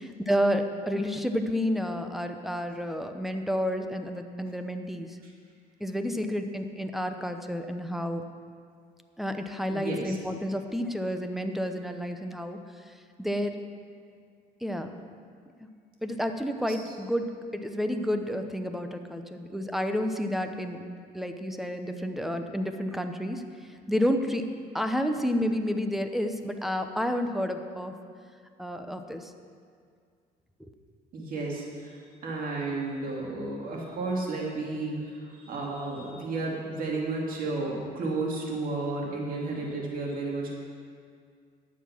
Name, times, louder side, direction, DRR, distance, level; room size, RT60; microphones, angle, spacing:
voice 1, 0.0-5.2 5.8-8.2 9.2-12.6 12.9-13.0 13.2-13.6 14.6-14.9 16.0-20.8 21.1-23.5 23.9-24.4 24.7-28.0 28.6-29.3 30.6-30.7, equal, ahead, 7 dB, 0.7 m, -30 dB
voice 2, 9.7-10.2 16.7-16.9 31.1-40.5, right 3 dB, 55° right, -2 dB, 2.4 m, -32 dB
9.9 x 7.4 x 6.0 m, 2.1 s
cardioid pair, 110°, 17 cm